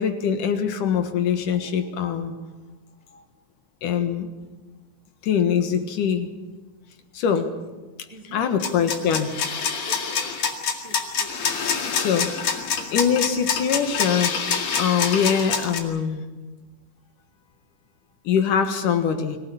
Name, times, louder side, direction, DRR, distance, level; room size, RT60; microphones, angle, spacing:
voice 1, 0.0-2.3 3.8-4.3 5.2-6.3 7.1-7.5 8.3-9.3 11.9-12.3 12.9-14.3 14.8-16.3 18.2-19.4, left 7 dB, 75° left, 7 dB, 3.1 m, -23 dB
voice 2, 8.1-8.9 9.8-11.3, right 1 dB, 20° right, 3 dB, 0.9 m, -43 dB
sound 1, 8.6-15.8, left 6 dB, 55° left, 3.2 m, -26 dB
25.0 x 17.0 x 8.6 m, 1.2 s
omnidirectional pair, 3.7 m